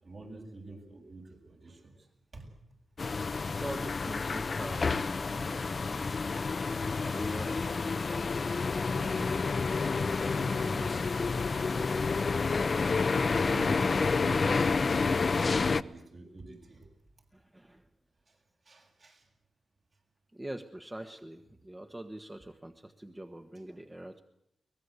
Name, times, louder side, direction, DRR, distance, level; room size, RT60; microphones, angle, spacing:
voice 1, 0.0-2.0 2.3-2.4 8.8-10.9 11.7-12.7 13.3-16.9 18.7-19.2 23.7-23.8, right 3 dB, 60° right, 1 dB, 7.9 m, -47 dB
sound 1, 3.0-15.8, left 4 dB, 55° left, 0.8 m, -29 dB
voice 2, 3.3-6.3 7.0-7.9 17.3-17.9 20.3-24.2, right 1 dB, 20° right, 6 dB, 1.4 m, -44 dB
23.0 x 19.5 x 8.2 m, 0.79 s
cardioid pair, 50°, 0 cm